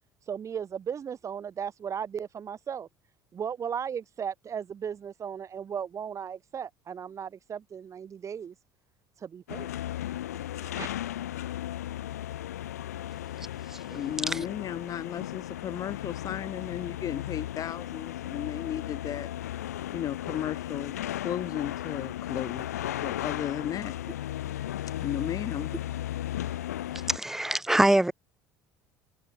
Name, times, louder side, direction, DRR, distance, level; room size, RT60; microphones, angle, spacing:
voice 1, 0.3-2.9 3.3-8.5 9.2-9.7 10.6-10.9, right 7 dB, 40° right, 2.3 m, -36 dB
sound 1, 9.5-27.2, left 12 dB, 85° left, 0.9 m, -35 dB
voice 2, 13.9-19.3 19.9-23.9 25.0-25.7, left 10 dB, 45° left, 1.6 m, -35 dB
voice 3, 27.1-28.1, right 1 dB, 5° right, 0.3 m, -23 dB
hypercardioid pair, 70°, 8 cm